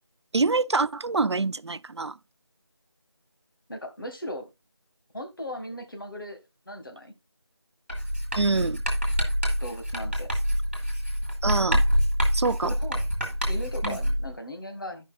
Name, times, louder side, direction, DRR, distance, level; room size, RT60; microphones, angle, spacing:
voice 1, 0.3-2.2 8.4-8.8 11.4-11.8 12.3-12.7 13.8-14.0, right 3 dB, 90° right, 0.4 m, -25 dB
voice 2, 3.7-4.5 5.1-6.4 6.6-7.1 9.6-10.3 12.6-13.0 13.5-15.1, left 1 dB, 55° left, 1.7 m, -37 dB
Writing, 7.9-14.3, equal, 25° right, 2.2 m, -26 dB
15.5 x 5.5 x 2.3 m
figure-of-eight pair, 180°, 14 cm